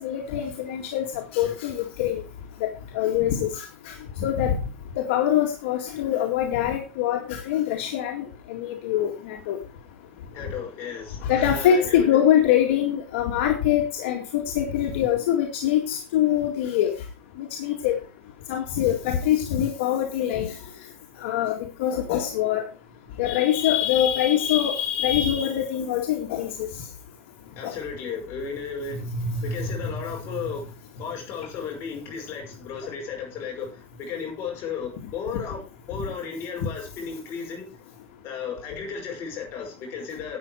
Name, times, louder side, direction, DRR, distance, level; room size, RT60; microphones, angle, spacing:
voice 1, 0.0-2.2 2.6-2.7 2.9-3.9 4.2-4.6 5.0-9.6 11.2-16.9 17.4-18.0 18.5-20.5 21.2-22.6 23.2-26.7 27.6-27.8 29.2-29.3 29.6-29.7, left 10 dB, 70° left, 2 dB, 2.1 m, -24 dB
voice 2, 10.3-12.2 27.6-29.1 29.4-30.7 31.0-35.6 35.9-37.7 38.2-40.4, left 6 dB, 35° left, 1 dB, 5.4 m, -34 dB
11.5 x 8.8 x 4.6 m, 0.32 s
supercardioid pair, 155°, 7 cm